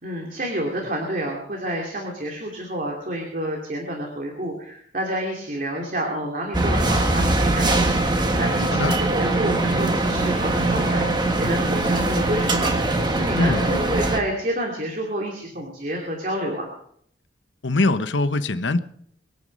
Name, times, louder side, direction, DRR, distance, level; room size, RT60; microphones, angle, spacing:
voice 1, 0.0-11.0 11.4-12.7 13.2-16.7, right 1 dB, 45° right, 2.9 m, -29 dB
sound 1, 6.5-14.2, right 2 dB, 25° right, 1.5 m, -22 dB
voice 2, 17.6-18.8, left 2 dB, 80° left, 1.0 m, -22 dB
23.5 x 9.6 x 5.4 m
head